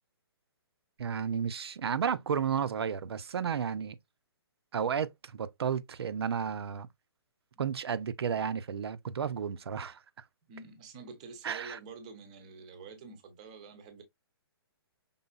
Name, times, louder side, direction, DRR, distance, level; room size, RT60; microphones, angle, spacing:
voice 1, 1.0-4.0 4.7-6.9 7.6-10.0 11.4-11.8, right 7 dB, 70° right, 0.6 m, -32 dB
voice 2, 10.5-14.0, right 4 dB, 15° right, 0.6 m, -48 dB
5.5 x 3.7 x 2.3 m
hypercardioid pair, 180°, 14 cm